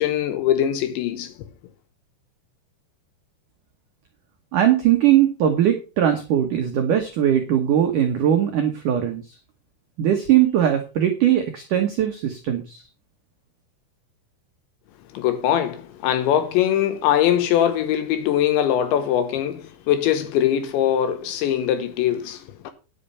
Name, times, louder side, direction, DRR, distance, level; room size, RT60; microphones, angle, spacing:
voice 1, 0.0-1.3 15.1-22.7, left 10 dB, 75° left, 3.1 m, -22 dB
voice 2, 4.5-9.2 10.0-12.8, right 10 dB, 85° right, 1.8 m, -20 dB
10.0 x 8.8 x 5.5 m
omnidirectional pair, 5.7 m